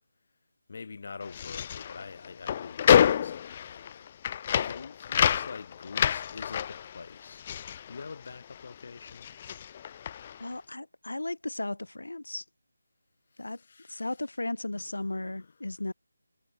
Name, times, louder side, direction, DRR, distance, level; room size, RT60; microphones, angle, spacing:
voice 1, 0.7-4.1 4.5-7.4 7.9-9.3 13.4-14.1 14.7-15.5, left 4 dB, 45° left, 4.8 m, -45 dB
sound 1, 1.2-8.7 9.0-10.5, left 9 dB, 30° left, 0.4 m, -28 dB
voice 2, 10.4-12.4 13.4-13.6 13.9-15.9, left 2 dB, 75° left, 5.2 m, -35 dB
figure-of-eight pair, 160°, 0 cm